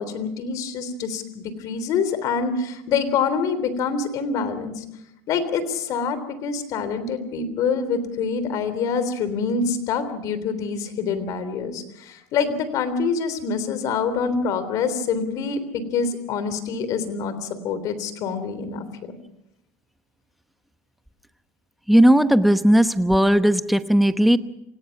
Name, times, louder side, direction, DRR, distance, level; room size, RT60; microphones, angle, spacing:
voice 1, 0.0-4.8 5.3-19.1, left 5 dB, 45° left, 12 dB, 3.4 m, -26 dB
voice 2, 21.9-24.4, equal, ahead, 11 dB, 1.0 m, -16 dB
27.5 x 17.5 x 5.9 m, 0.81 s
supercardioid pair, 130°, 8 cm